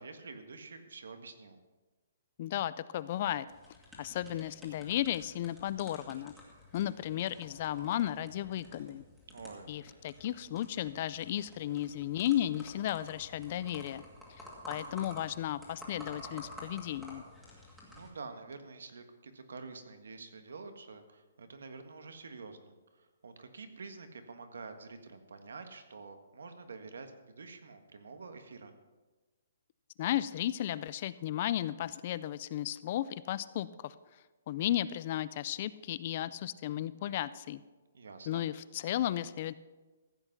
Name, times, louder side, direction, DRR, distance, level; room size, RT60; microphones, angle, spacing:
voice 1, 0.0-1.6 9.3-9.7 17.9-28.7 37.9-38.4, right 4 dB, 85° right, 7 dB, 1.6 m, -48 dB
voice 2, 2.4-3.5 4.0-6.3 6.7-9.0 9.7-14.0 14.4-17.2 30.0-33.9 34.5-37.6 38.3-39.5, left 12 dB, 30° left, 17 dB, 0.3 m, -34 dB
sound 1, 3.5-18.1, left 1 dB, ahead, 1.8 m, -52 dB
14.5 x 7.9 x 5.9 m, 1.2 s
hypercardioid pair, 175°, 0 cm